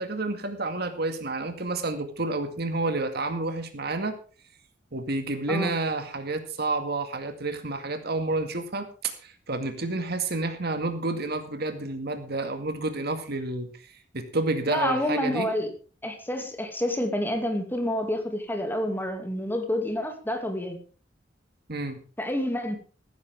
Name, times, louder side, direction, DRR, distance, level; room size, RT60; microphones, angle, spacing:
voice 1, 0.0-4.1 4.9-13.7 14.1-15.5 21.7-22.0, right 2 dB, 60° right, 8 dB, 2.0 m, -29 dB
voice 2, 14.7-15.7 16.0-20.8 22.2-22.8, left 1 dB, 10° left, 5 dB, 2.4 m, -28 dB
15.0 x 13.5 x 3.6 m, 0.37 s
head